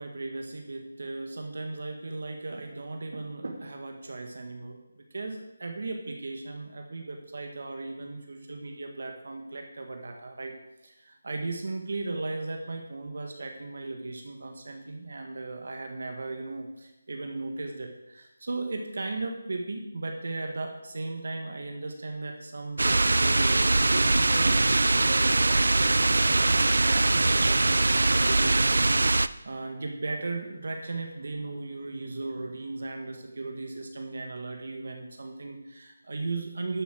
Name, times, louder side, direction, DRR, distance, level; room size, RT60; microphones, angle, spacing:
voice 1, 0.0-10.6 10.8-24.6 25.0-28.6 29.4-36.8, right 3 dB, 65° right, 3 dB, 1.8 m, -36 dB
sound 1, 22.8-29.3, right 2 dB, 85° right, 0.5 m, -22 dB
12.0 x 7.1 x 6.2 m, 0.93 s
figure-of-eight pair, 170°, 0 cm